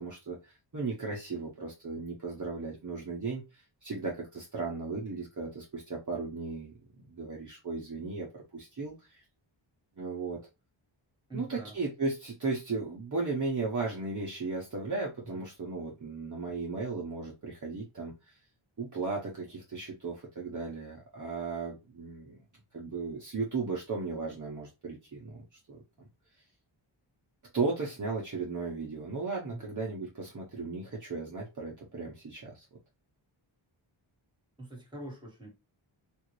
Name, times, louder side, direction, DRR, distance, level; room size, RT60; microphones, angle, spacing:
voice 1, 0.0-9.2 10.0-10.4 11.3-18.4 18.8-22.4 22.7-25.8 27.5-32.6, right 4 dB, 40° right, 0.8 m, -36 dB
voice 2, 11.3-11.8 15.2-15.4 29.5-29.8 34.6-35.5, right 1 dB, 10° right, 1.4 m, -44 dB
3.5 x 2.5 x 3.0 m
wide cardioid pair, 105°, 49 cm